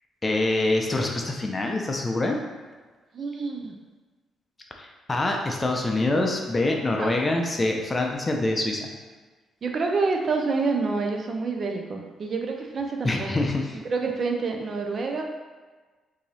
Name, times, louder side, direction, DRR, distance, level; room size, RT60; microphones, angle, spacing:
voice 1, 0.2-2.4 4.8-8.9 13.0-13.7, left 2 dB, 25° left, 1 dB, 0.5 m, -25 dB
voice 2, 3.1-3.8 7.0-7.2 9.6-13.4 13.7-15.2, right 4 dB, 45° right, 2 dB, 0.5 m, -28 dB
2.9 x 2.7 x 4.1 m, 1.3 s
cardioid pair, 90°, 0 cm